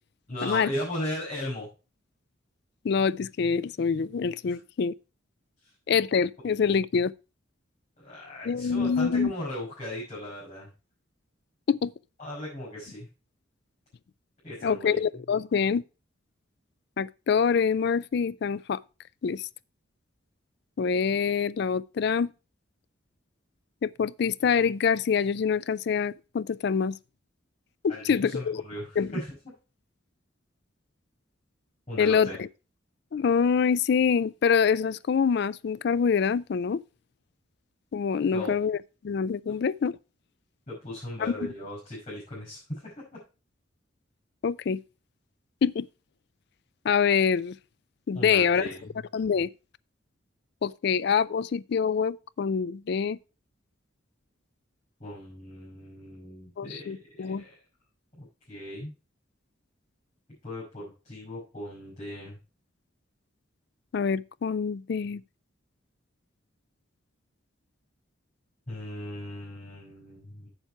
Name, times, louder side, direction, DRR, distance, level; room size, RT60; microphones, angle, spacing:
voice 1, 0.3-1.7 4.5-4.6 8.0-10.7 12.2-13.1 14.4-15.0 27.9-29.4 31.9-32.4 38.2-38.5 40.7-42.9 48.1-49.0 55.0-56.9 57.2-57.6 58.1-58.9 60.4-62.4 68.7-70.5, left 1 dB, 35° left, 6.1 m, -37 dB
voice 2, 2.8-4.9 5.9-7.1 8.5-9.3 11.7-11.9 14.6-15.8 17.0-18.8 19.2-19.4 20.8-22.3 23.8-27.0 27.8-28.6 29.0-29.1 32.0-32.5 33.1-36.8 37.9-38.8 39.0-39.9 41.4-41.5 44.4-44.8 45.6-45.9 46.8-47.5 48.1-48.7 49.1-49.5 50.6-53.2 56.6-57.4 63.9-65.2, left 6 dB, 55° left, 0.3 m, -25 dB
8.1 x 7.3 x 4.5 m
head